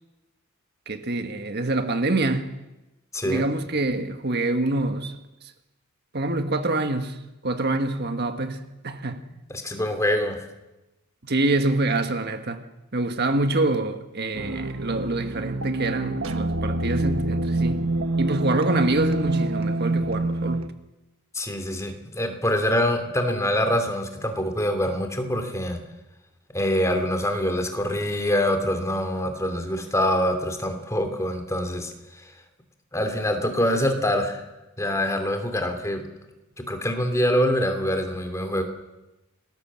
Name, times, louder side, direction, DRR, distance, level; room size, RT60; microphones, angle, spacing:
voice 1, 0.9-2.6 3.2-5.2 5.4-5.5 6.1-9.3 11.2-12.6 12.9-17.9 18.2-20.6, right 2 dB, 50° right, 1.5 m, -26 dB
voice 2, 9.5-10.5 21.3-25.8 26.5-32.2 32.9-34.4 34.8-36.1 36.6-38.6, left 1 dB, 15° left, 2.8 m, -25 dB
sound 1, 14.3-20.7, right 2 dB, 65° right, 1.4 m, -26 dB
28.5 x 19.5 x 7.6 m
head